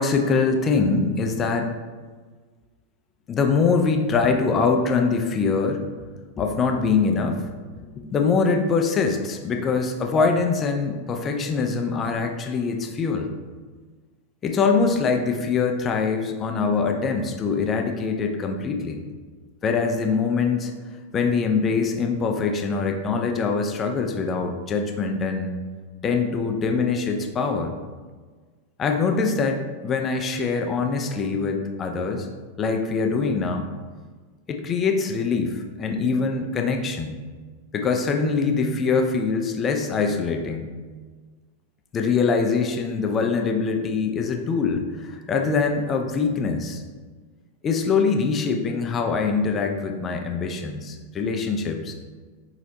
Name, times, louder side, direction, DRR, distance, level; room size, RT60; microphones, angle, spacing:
voice 1, 0.0-1.7 3.3-5.8 6.4-7.4 7.8-13.3 14.4-19.0 19.6-20.7 21.1-25.5 26.0-27.7 28.8-32.3 32.6-33.7 34.5-37.2 37.7-40.7 41.9-46.8 47.6-51.9, left 4 dB, 25° left, 4 dB, 0.4 m, -23 dB
4.8 x 2.0 x 2.7 m, 1.4 s
figure-of-eight pair, 90°, 0 cm